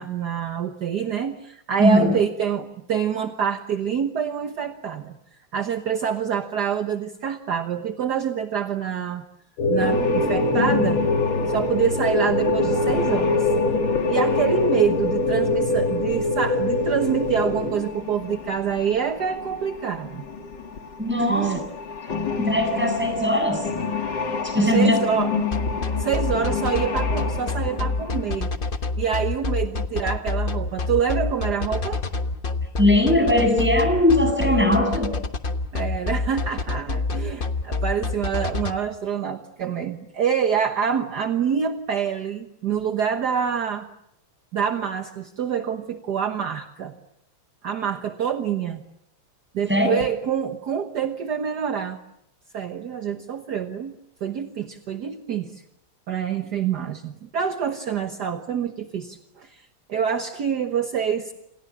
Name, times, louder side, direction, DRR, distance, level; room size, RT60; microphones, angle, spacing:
voice 1, 0.0-5.1 5.5-9.2 9.7-11.0 11.5-13.5 14.1-20.3 21.3-21.6 24.7-25.3 25.9-28.5 29.0-32.0 35.7-43.9 44.5-46.9 47.6-48.8 49.5-52.0 52.5-53.9 54.2-55.6 56.1-59.6 59.9-61.3, right 7 dB, 55° right, 6 dB, 1.7 m, -26 dB
voice 2, 1.8-2.1 21.0-21.6 22.4-23.6 24.4-25.0 32.8-35.1 49.7-49.9, left 1 dB, 5° right, 5 dB, 7.6 m, -19 dB
sound 1, 9.6-17.7, left 2 dB, 85° left, 7.4 m, -23 dB
sound 2, 9.8-28.4, left 5 dB, 60° left, 3.2 m, -31 dB
sound 3, 25.5-38.7, left 3 dB, 30° left, 1.1 m, -26 dB
28.5 x 28.0 x 7.2 m, 0.78 s
omnidirectional pair, 2.2 m